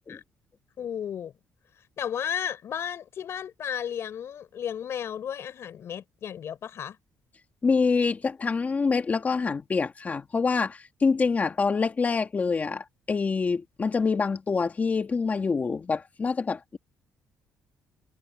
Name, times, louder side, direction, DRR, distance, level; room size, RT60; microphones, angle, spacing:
voice 1, 0.8-1.3 2.0-7.0, left 9 dB, 55° left, 5.7 m, -33 dB
voice 2, 7.6-16.8, left 4 dB, 30° left, 2.5 m, -26 dB
cardioid pair, 115°, 5 cm